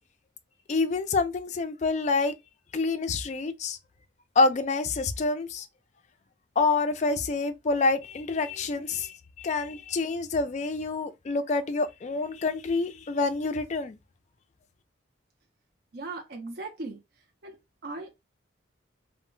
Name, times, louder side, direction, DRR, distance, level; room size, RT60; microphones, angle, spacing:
voice 1, 0.7-2.3 2.7-3.8 4.4-5.7 6.6-14.0, left 3 dB, 35° left, 0.3 m, -27 dB
voice 2, 15.9-17.0 17.4-17.6 17.8-18.1, right 3 dB, 55° right, 0.5 m, -37 dB
2.1 x 2.0 x 3.7 m
head